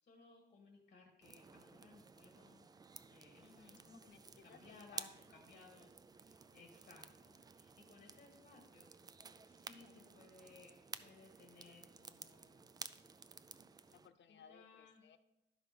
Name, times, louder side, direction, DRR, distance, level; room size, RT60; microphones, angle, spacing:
voice 1, 0.0-2.7 3.1-3.9 4.4-12.7 14.3-15.0, left 3 dB, 45° left, 2 dB, 1.8 m, -62 dB
sound 1, 1.2-14.1, right 4 dB, 20° right, 0.3 m, -54 dB
voice 2, 3.4-5.1 13.9-15.2, left 7 dB, 80° left, 9 dB, 0.8 m, -62 dB
12.0 x 5.1 x 6.1 m, 0.88 s
wide cardioid pair, 175°, 18 cm